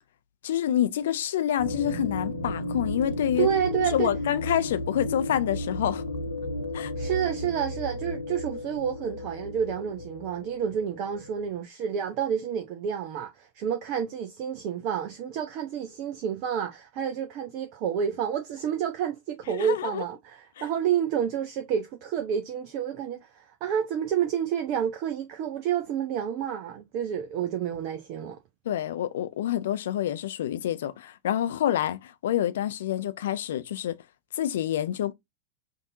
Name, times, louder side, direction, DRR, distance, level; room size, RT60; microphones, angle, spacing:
voice 1, 0.4-3.5 3.9-6.0 6.7-6.9 19.5-20.0 20.6-20.7 28.7-34.0 34.3-35.1, left 11 dB, 60° left, 0.5 m, -27 dB
sound 1, 1.6-11.6, left 2 dB, 85° left, 0.9 m, -33 dB
voice 2, 3.4-4.1 7.0-28.4, right 8 dB, 40° right, 0.5 m, -29 dB
5.2 x 2.6 x 2.6 m
figure-of-eight pair, 90°, 0 cm